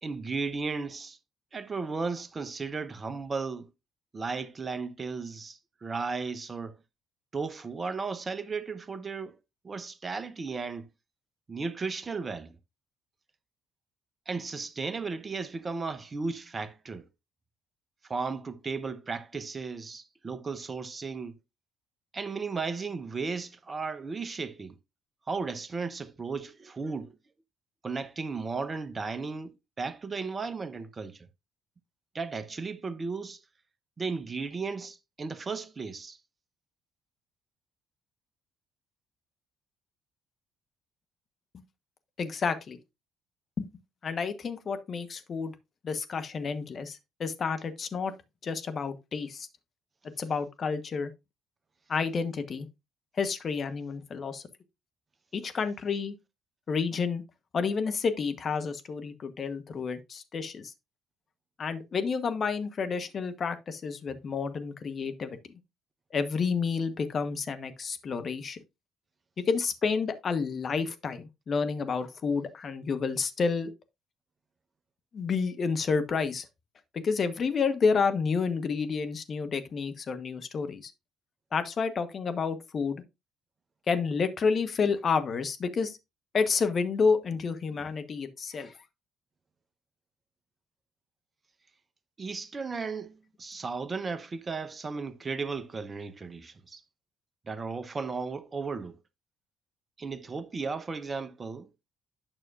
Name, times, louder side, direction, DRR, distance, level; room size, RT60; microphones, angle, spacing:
voice 1, 0.0-1.2 1.5-3.7 4.1-6.8 7.3-9.4 9.6-10.9 11.5-12.5 14.3-17.1 18.1-21.4 22.1-24.8 25.3-27.2 27.8-31.3 32.1-33.4 34.0-36.2 92.2-96.8 97.5-98.9 100.0-101.7, right 4 dB, 30° right, 0.9 m, -35 dB
voice 2, 42.2-42.8 43.6-43.7 44.0-45.5 45.8-48.1 48.4-49.5 50.2-51.1 51.9-52.7 53.2-54.4 55.3-56.1 56.7-57.2 57.5-60.7 61.6-65.4 66.1-68.6 69.5-73.7 75.1-76.4 76.9-80.9 81.5-83.0 83.9-86.0 86.3-88.8, left 5 dB, 45° left, 1.1 m, -30 dB
9.0 x 6.3 x 2.5 m
hypercardioid pair, 50°, 0 cm